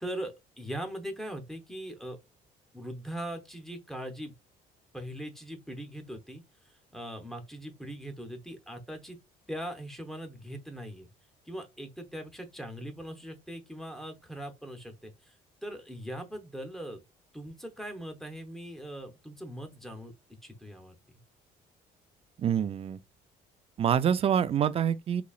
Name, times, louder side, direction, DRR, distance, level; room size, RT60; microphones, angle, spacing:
voice 1, 0.0-2.2 2.7-4.3 4.9-9.2 9.5-11.1 11.5-15.3 15.6-17.0 17.3-20.1 20.4-20.9, equal, ahead, 0.9 m, -40 dB
voice 2, 22.4-23.0 23.8-25.2, right 8 dB, 35° right, 0.4 m, -26 dB
4.0 x 3.0 x 2.4 m
cardioid pair, 110°, 17 cm